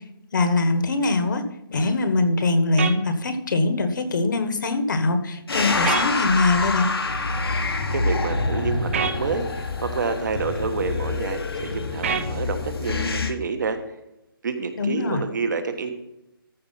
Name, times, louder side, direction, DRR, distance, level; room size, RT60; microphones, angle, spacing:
voice 1, 0.3-1.4 1.7-6.9 14.8-15.2, left 2 dB, 55° left, 9 dB, 1.5 m, -22 dB
sound 1, 2.8-3.0 5.8-6.1 8.9-9.2 12.0-12.3, right 6 dB, 35° right, 0.8 m, -25 dB
sound 2, 5.5-13.3, left 3 dB, 80° left, 1.5 m, -26 dB
voice 2, 7.9-9.5 9.8-13.8 14.4-15.9, right 4 dB, 55° right, 7 dB, 1.5 m, -28 dB
14.0 x 4.8 x 5.7 m, 0.86 s
hypercardioid pair, 165°, 12 cm